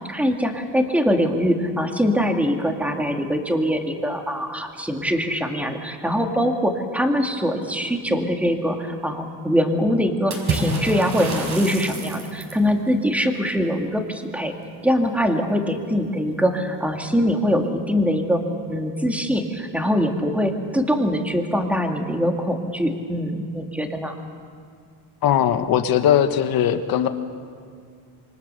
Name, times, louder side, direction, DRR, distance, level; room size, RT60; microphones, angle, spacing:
voice 1, 0.1-14.5 14.8-18.4 18.7-24.2, equal, 5° right, 3 dB, 2.3 m, -23 dB
Water / Splash splatter, 10.3-12.7, right 3 dB, 45° right, 5.6 m, -28 dB
voice 2, 25.2-27.1, left 10 dB, 60° left, 8 dB, 1.6 m, -19 dB
27.0 x 24.5 x 6.9 m, 2.2 s
cardioid pair, 140°, 40 cm